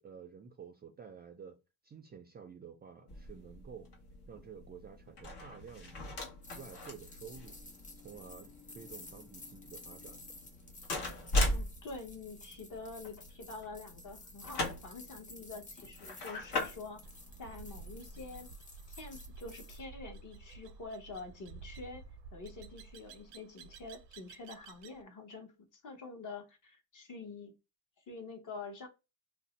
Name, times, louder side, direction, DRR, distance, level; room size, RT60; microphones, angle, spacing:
voice 1, 0.0-1.6 1.8-3.9 4.3-6.1 6.5-7.6 8.0-10.2, right 6 dB, 25° right, 0.4 m, -51 dB
sound 1, 3.1-18.5, left 1 dB, 70° left, 1.1 m, -40 dB
sound 2, 6.4-19.8, left 2 dB, 20° left, 0.6 m, -54 dB
voice 2, 11.4-17.1 17.4-18.5 19.0-22.0 22.3-27.5 28.1-28.9, left 3 dB, 45° left, 1.1 m, -47 dB
sound 3, 17.0-25.0, right 4 dB, 85° right, 0.6 m, -52 dB
2.6 x 2.1 x 3.9 m
cardioid pair, 115°, 41 cm